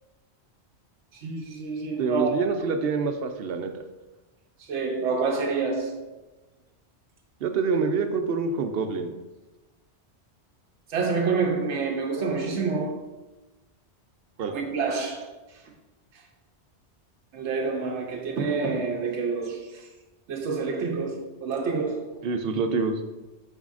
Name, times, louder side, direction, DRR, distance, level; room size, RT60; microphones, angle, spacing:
voice 1, 1.2-2.3 4.7-6.0 10.9-13.0 14.5-15.3 17.3-19.9 20.3-22.1, right 4 dB, 90° right, 1.0 m, -28 dB
voice 2, 2.0-3.7 7.4-9.1 14.4-14.5 22.2-23.0, right 4 dB, 65° right, 0.8 m, -26 dB
7.2 x 5.4 x 2.5 m
omnidirectional pair, 1.1 m